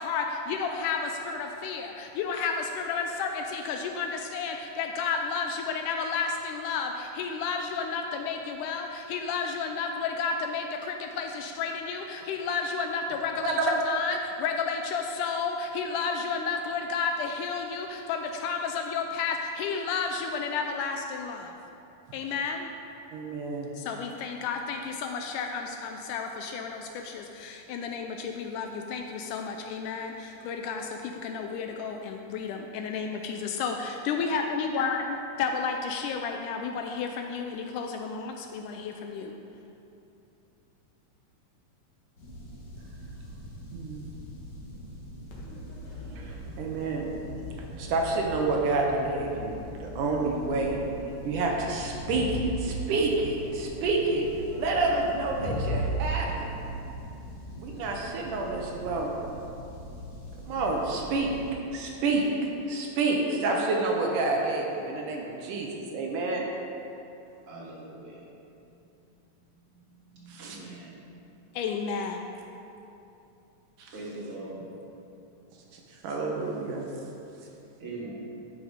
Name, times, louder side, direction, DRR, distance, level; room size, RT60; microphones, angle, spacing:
voice 1, 0.0-21.5 22.1-22.7 23.8-35.1 35.4-39.4 71.5-72.2, left 5 dB, 80° left, 4 dB, 1.9 m, -32 dB
voice 2, 13.4-13.8 23.1-23.7 43.7-44.1 46.2-47.2 47.8-49.6 49.8-50.8 51.2-54.2 54.6-56.5 57.6-59.1 60.5-61.3 61.7-66.4 70.3-70.6 73.8-74.0 76.0-76.9, right 3 dB, 75° right, 0 dB, 2.4 m, -28 dB
sound 1, 42.2-61.5, equal, 40° left, 1.6 m, -43 dB
Crowd, 45.3-56.0, equal, 60° left, 2.6 m, -38 dB
voice 3, 67.5-68.2 70.1-71.0 73.9-74.6 77.8-78.1, right 2 dB, 50° right, -6 dB, 2.2 m, -41 dB
11.0 x 5.7 x 5.1 m, 2.8 s
omnidirectional pair, 3.9 m